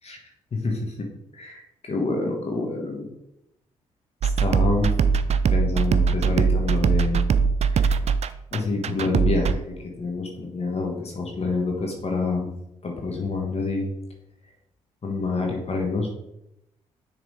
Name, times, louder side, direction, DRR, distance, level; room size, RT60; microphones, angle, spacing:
voice 1, 0.5-0.9 1.3-3.1 4.2-4.9 5.5-7.3 7.7-8.0 8.5-12.5 12.8-13.9 15.0-16.1, left 3 dB, 45° left, 1 dB, 1.4 m, -27 dB
sound 1, 4.2-9.5, right 5 dB, 45° right, 0.4 m, -21 dB
6.4 x 3.6 x 4.9 m, 0.84 s
hypercardioid pair, 50°, 15 cm